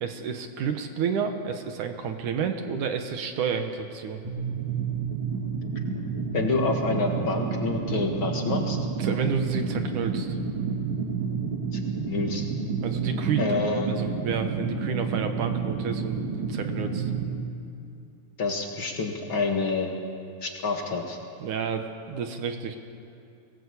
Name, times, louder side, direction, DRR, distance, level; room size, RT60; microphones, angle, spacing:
voice 1, 0.0-4.2 9.0-10.4 12.8-13.6 13.9-17.1 21.4-22.8, right 6 dB, 65° right, 6 dB, 2.2 m, -30 dB
sound 1, 4.2-17.2, right 5 dB, 45° right, 3.6 m, -29 dB
voice 2, 6.3-8.8 11.7-11.8 12.1-12.5 13.4-13.9 18.4-19.9 20.4-21.2, left 4 dB, 50° left, 2 dB, 1.6 m, -27 dB
24.0 x 19.5 x 8.3 m, 2.7 s
omnidirectional pair, 4.8 m